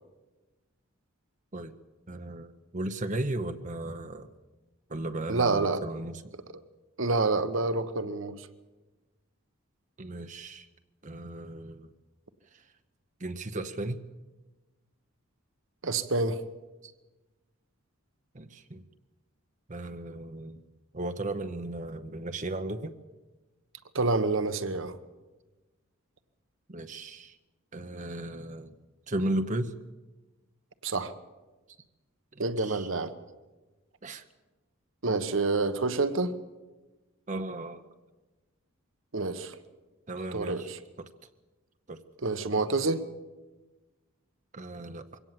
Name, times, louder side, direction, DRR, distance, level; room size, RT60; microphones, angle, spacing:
voice 1, 2.1-4.3 4.9-6.2 10.0-10.7 11.0-11.9 12.5-12.6 13.2-14.0 16.8-16.9 18.3-18.8 19.7-20.6 20.9-22.9 26.7-27.4 27.7-28.7 29.1-29.7 32.3-32.9 34.0-34.2 37.3-37.8 40.1-40.7 41.0-41.1 41.9-42.0 44.5-45.2, right 1 dB, 35° right, 9 dB, 0.8 m, -35 dB
voice 2, 5.3-5.8 7.0-8.3 15.8-16.4 23.9-25.0 30.8-31.1 32.4-33.1 35.0-36.3 39.1-39.6 40.3-40.8 42.2-43.0, right 3 dB, 60° right, 12 dB, 1.1 m, -27 dB
23.0 x 17.0 x 7.6 m, 1.2 s
head